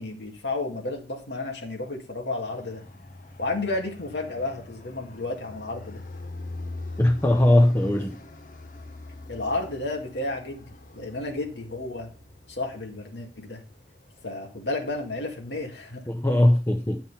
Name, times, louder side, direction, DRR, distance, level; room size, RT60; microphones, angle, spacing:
voice 1, 0.0-2.8 3.4-6.0 9.3-12.1 12.5-13.6 14.2-16.0, left 2 dB, 80° left, 2.2 m, -32 dB
Fixed-wing aircraft airplane, 2.5-16.0, left 2 dB, 50° left, 1.2 m, -44 dB
voice 2, 7.0-8.2 16.1-17.0, left 1 dB, 15° left, 0.8 m, -20 dB
10.5 x 5.9 x 5.6 m
head